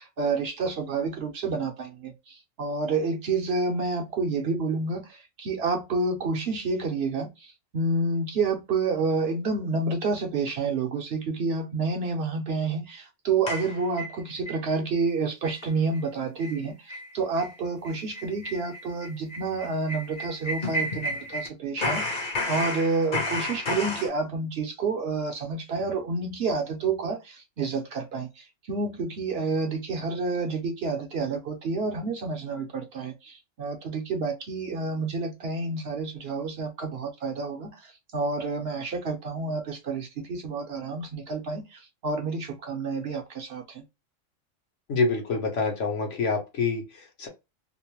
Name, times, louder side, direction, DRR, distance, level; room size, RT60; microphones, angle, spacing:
voice 1, 0.0-22.2 22.5-43.8, right 4 dB, 60° right, 0.8 m, -29 dB
sound 1, 13.5-14.6 15.0-15.1 15.4-15.7 15.9-16.0 16.4-16.6 16.9-17.1 17.4-17.5 17.8-21.5 21.8-24.1, left 1 dB, 45° left, 0.9 m, -31 dB
voice 2, 44.9-47.3, left 4 dB, 70° left, 1.2 m, -27 dB
2.9 x 2.0 x 2.9 m
omnidirectional pair, 1.3 m